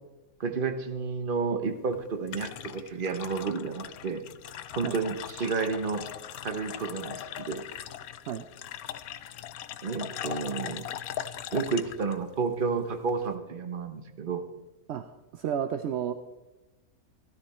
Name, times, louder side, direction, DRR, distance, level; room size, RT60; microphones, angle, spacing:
voice 1, 0.4-4.2 4.8-6.0 6.4-7.6 9.8-10.9 11.5-14.4, right 5 dB, 40° right, 8 dB, 1.1 m, -31 dB
sound 1, 1.6-13.4, left 10 dB, 75° left, 1.1 m, -40 dB
voice 2, 14.9-16.1, right 9 dB, 60° right, 9 dB, 0.7 m, -32 dB
14.0 x 13.0 x 4.3 m, 1.1 s
omnidirectional pair, 1.6 m